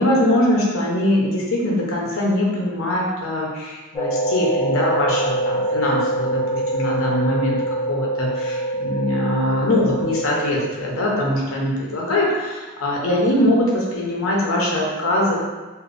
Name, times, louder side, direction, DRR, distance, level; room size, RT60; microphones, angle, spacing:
voice 1, 0.0-15.4, left 1 dB, 80° left, -3 dB, 0.6 m, -22 dB
sound 1, 3.9-10.5, right 1 dB, 5° left, 0.7 m, -24 dB
2.7 x 2.0 x 2.4 m, 1.2 s
head